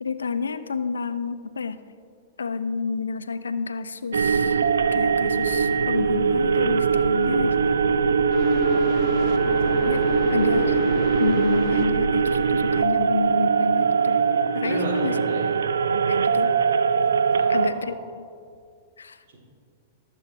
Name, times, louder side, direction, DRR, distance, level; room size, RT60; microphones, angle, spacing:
voice 1, 0.0-1.8 2.4-4.6 4.9-7.5 9.8-10.8 11.2-14.2 14.5-15.1 15.9-16.6 17.5-18.2 19.0-19.2, left 5 dB, 80° left, 12 dB, 0.5 m, -29 dB
sound 1, 4.1-17.7, right 5 dB, 75° right, 0.5 m, -21 dB
sound 2, 8.3-11.9, left 8 dB, 50° left, 1.1 m, -32 dB
voice 2, 14.6-15.4 17.1-18.0 19.3-19.4, right 2 dB, 60° right, -1 dB, 2.8 m, -32 dB
20.0 x 7.4 x 3.3 m, 2.2 s
figure-of-eight pair, 100°, 0 cm